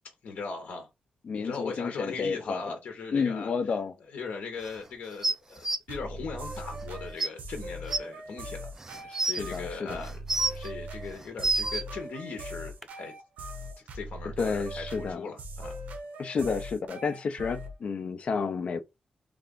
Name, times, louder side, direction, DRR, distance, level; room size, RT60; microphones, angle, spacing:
voice 1, 0.2-0.9 1.3-3.5 4.1-13.1 13.9-15.8, left 4 dB, 70° left, 0.9 m, -39 dB
voice 2, 1.2-2.7 3.1-3.9 9.1-10.0 14.4-15.3 16.2-18.8, left 5 dB, 50° left, 0.5 m, -31 dB
sound 1, 5.2-5.8 6.8-6.9 7.2-7.3 7.9-8.0 8.8-9.4 10.0-10.7 11.2-11.8 12.8-12.9, right 3 dB, 15° right, 0.3 m, -27 dB
sound 2, 5.9-17.8, right 1 dB, 75° right, 0.9 m, -40 dB
3.4 x 2.4 x 3.6 m
wide cardioid pair, 165°, 3 cm